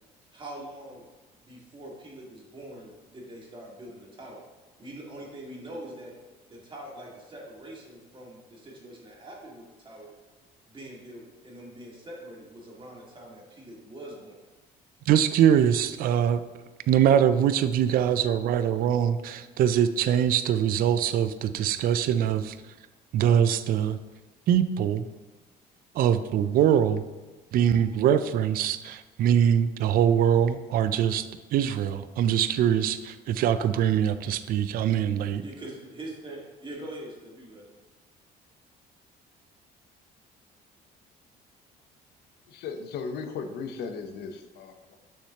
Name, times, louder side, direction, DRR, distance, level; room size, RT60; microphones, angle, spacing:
voice 1, 0.3-1.0 1.4-4.4 4.8-6.1 6.5-10.1 10.7-14.4 35.4-37.7, right 1 dB, 30° right, -3 dB, 1.9 m, -43 dB
voice 2, 15.1-16.4 16.9-22.6 23.1-24.0 24.5-25.0 26.0-27.0 27.5-31.3 31.5-35.4, right 9 dB, 60° right, 12 dB, 0.4 m, -23 dB
voice 3, 42.5-45.0, left 5 dB, 75° left, 7 dB, 0.8 m, -36 dB
6.5 x 6.3 x 2.9 m, 1.2 s
cardioid pair, 110°, 17 cm